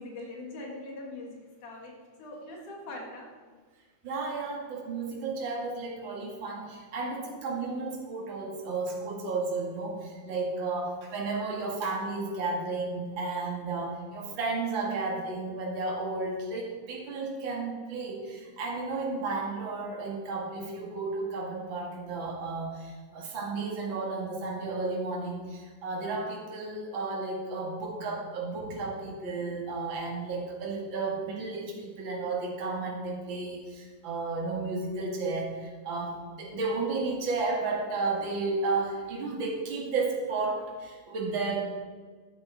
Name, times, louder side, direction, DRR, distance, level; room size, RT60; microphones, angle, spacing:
voice 1, 0.0-1.9 2.2-3.3, left 2 dB, 80° left, 0 dB, 3.2 m, -41 dB
voice 2, 4.0-41.6, right 3 dB, 40° right, -1 dB, 2.5 m, -33 dB
13.0 x 10.0 x 4.1 m, 1.5 s
omnidirectional pair, 3.5 m